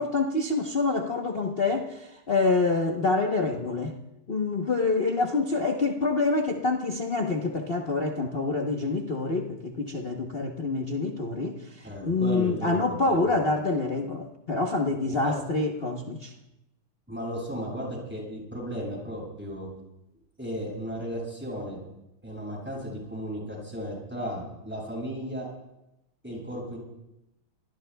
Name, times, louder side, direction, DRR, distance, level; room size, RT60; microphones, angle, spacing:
voice 1, 0.0-3.9 4.3-16.3, left 3 dB, 40° left, 0.8 m, -27 dB
voice 2, 11.8-13.3 15.1-15.3 17.1-19.7 20.4-21.8 22.2-25.5 26.2-26.8, equal, 5° right, 7.2 m, -35 dB
27.0 x 20.0 x 2.3 m
omnidirectional pair, 2.4 m